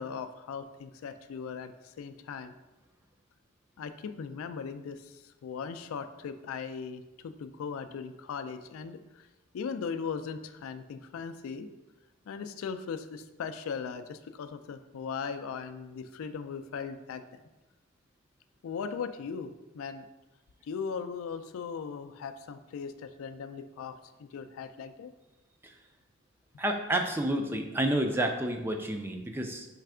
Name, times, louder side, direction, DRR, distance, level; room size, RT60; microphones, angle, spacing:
voice 1, 0.0-2.5 3.8-9.3 9.5-11.7 12.3-17.4 18.6-20.1 20.6-25.1, left 6 dB, 75° left, 10 dB, 0.3 m, -38 dB
voice 2, 26.6-29.7, right 1 dB, 10° right, 3 dB, 0.3 m, -30 dB
3.4 x 3.3 x 4.8 m, 1.0 s
head